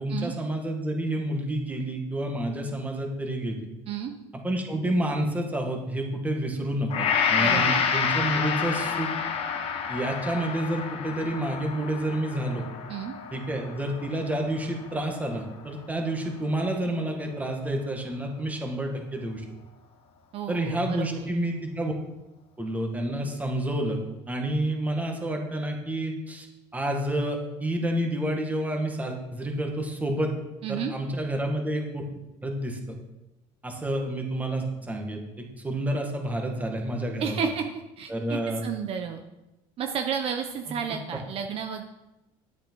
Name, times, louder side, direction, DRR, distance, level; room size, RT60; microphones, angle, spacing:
voice 1, 0.0-3.7 4.4-9.1 9.9-12.6 13.3-19.4 20.5-21.9 22.6-24.0 24.3-26.5 26.7-30.3 30.7-32.0 32.4-32.8 33.6-37.3 38.1-38.6, right 1 dB, 10° right, 2 dB, 1.9 m, -29 dB
Gong, 6.9-15.2 15.7-15.8, left 6 dB, 50° left, 1.4 m, -29 dB
voice 2, 7.4-7.7 12.9-13.1 20.3-21.3 30.6-30.9 37.2-37.6 38.0-39.2 39.8-41.8, right 7 dB, 50° right, 5 dB, 0.9 m, -31 dB
10.5 x 8.4 x 4.7 m, 0.97 s
cardioid pair, 125°, 13 cm